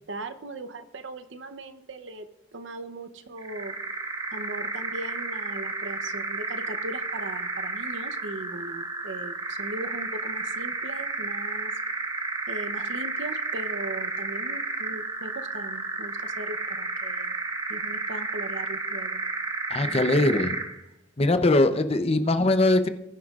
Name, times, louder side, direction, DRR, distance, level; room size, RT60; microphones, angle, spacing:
voice 1, 0.1-2.3 2.5-3.8 4.3-11.7 12.5-17.4 17.7-19.2 19.8-20.4, right 2 dB, 70° right, 9 dB, 0.8 m, -39 dB
sound 1, 3.4-20.8, right 3 dB, 20° right, 1.1 m, -32 dB
voice 2, 19.7-20.5 21.2-22.9, left 2 dB, 30° left, 9 dB, 0.7 m, -21 dB
20.0 x 10.0 x 2.4 m, 0.85 s
head